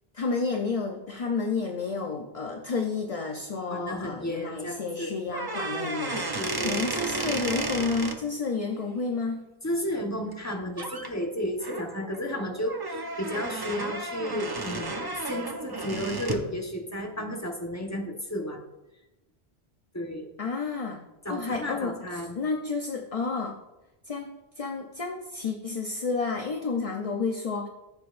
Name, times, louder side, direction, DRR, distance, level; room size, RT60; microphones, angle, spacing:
voice 1, 0.1-9.5 20.4-21.0 21.3-23.5 24.0-24.3 24.6-27.7, left 4 dB, 40° left, 2 dB, 0.7 m, -30 dB
voice 2, 3.7-5.1 6.4-6.8 9.6-18.6 19.9-20.3 21.2-22.4, equal, 15° left, 1 dB, 1.3 m, -33 dB
sound 1, 5.3-8.2 10.3-10.5 10.8-11.1 11.6-16.5, right 2 dB, 25° right, 0.7 m, -33 dB
14.5 x 7.4 x 2.6 m, 0.98 s
omnidirectional pair, 1.0 m